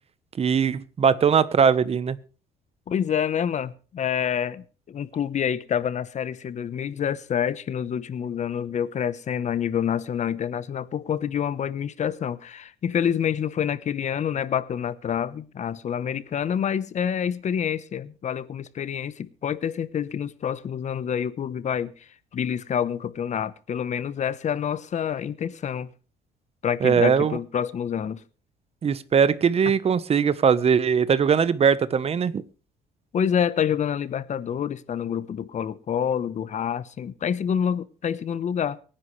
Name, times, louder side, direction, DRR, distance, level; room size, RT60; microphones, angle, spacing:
voice 1, 0.4-2.2 26.8-27.4 28.8-32.4, right 7 dB, 35° right, 1.1 m, -20 dB
voice 2, 2.9-25.9 26.6-28.2 33.1-38.8, left 8 dB, 45° left, 1.0 m, -27 dB
24.0 x 10.0 x 3.3 m
cardioid pair, 110°, 17 cm